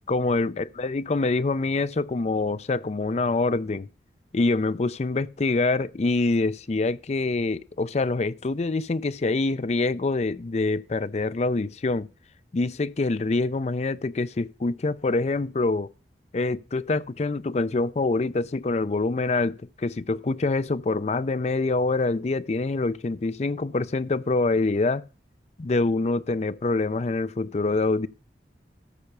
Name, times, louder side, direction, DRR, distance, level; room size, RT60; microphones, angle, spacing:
voice 1, 0.1-3.9 4.3-12.1 12.5-15.9 16.3-25.0 25.6-28.1, left 3 dB, 40° left, 0.5 m, -25 dB
13.5 x 5.7 x 6.7 m
head